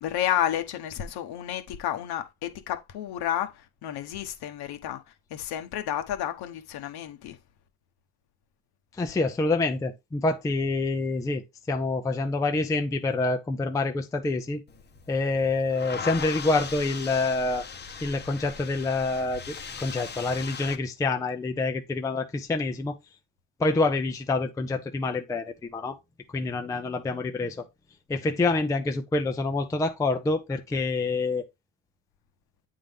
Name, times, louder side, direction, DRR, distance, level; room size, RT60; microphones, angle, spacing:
voice 1, 0.0-5.0 5.3-7.4, left 11 dB, 60° left, 1.1 m, -31 dB
voice 2, 9.0-14.6 15.1-17.7 18.0-23.0 23.6-26.0 26.3-27.7 28.1-31.5, left 3 dB, 10° left, 0.4 m, -27 dB
sound 1, 14.7-20.8, left 5 dB, 25° left, 0.8 m, -39 dB
8.6 x 3.8 x 3.5 m
cardioid pair, 150°, 44 cm